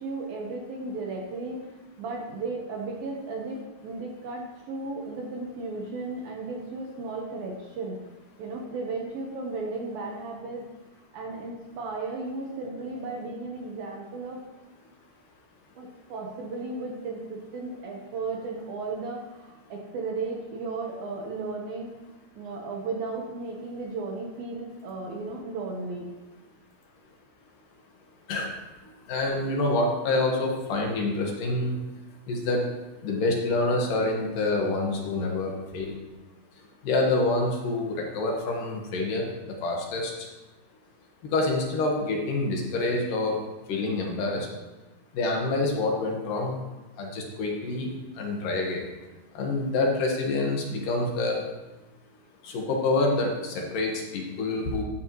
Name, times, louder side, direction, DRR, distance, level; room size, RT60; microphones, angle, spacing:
voice 1, 0.0-1.6 2.0-8.0 8.4-10.6 11.1-14.4 15.8-21.9 22.3-26.1, right 3 dB, 65° right, 0 dB, 2.6 m, -35 dB
voice 2, 29.1-31.8 32.3-32.7 33.0-35.9 36.8-40.1 41.3-43.4 43.7-44.5 45.1-46.6 47.0-48.8 49.3-51.4 52.4-54.8, left 2 dB, 60° left, 0 dB, 2.6 m, -27 dB
13.5 x 10.5 x 3.1 m, 1.1 s
omnidirectional pair, 5.2 m